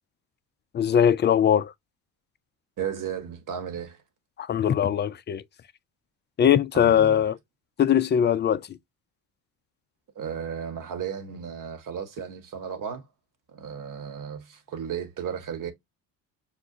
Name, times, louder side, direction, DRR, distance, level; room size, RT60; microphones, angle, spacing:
voice 1, 0.7-1.7 4.4-5.4 6.4-7.4 7.8-8.8, left 9 dB, 25° left, 0.4 m, -21 dB
voice 2, 2.8-4.0 6.7-7.2 10.1-13.0 13.5-15.7, right 8 dB, 45° right, 1.3 m, -34 dB
6.4 x 2.2 x 2.6 m
hypercardioid pair, 65°, 45 cm